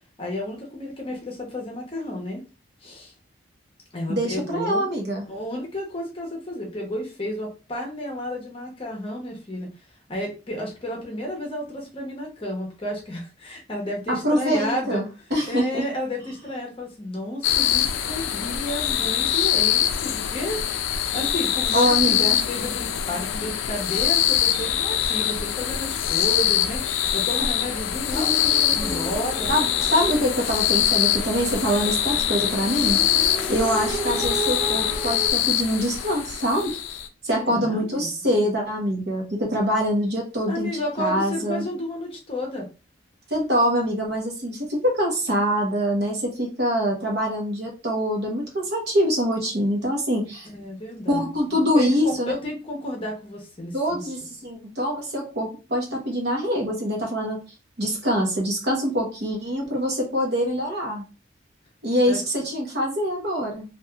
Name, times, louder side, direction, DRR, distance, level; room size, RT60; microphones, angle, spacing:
voice 1, 0.2-2.4 2.8-3.1 3.9-4.9 5.3-9.7 10.1-15.0 15.5-20.8 21.1-29.5 37.4-38.1 40.5-42.7 50.5-54.0 62.1-62.2, left 1 dB, 30° left, 0 dB, 0.7 m, -32 dB
voice 2, 4.1-5.2 14.1-15.0 15.3-15.8 21.7-22.4 29.5-36.8 37.2-41.6 43.3-50.5 51.1-52.3 53.7-57.4 57.8-61.0 61.8-63.6, equal, 55° right, 0 dB, 0.9 m, -24 dB
sound 1, 17.4-37.1, left 10 dB, 75° left, 0.3 m, -24 dB
sound 2, 28.1-35.3, right 2 dB, 5° right, 0.3 m, -33 dB
3.2 x 2.4 x 2.3 m, 0.32 s
head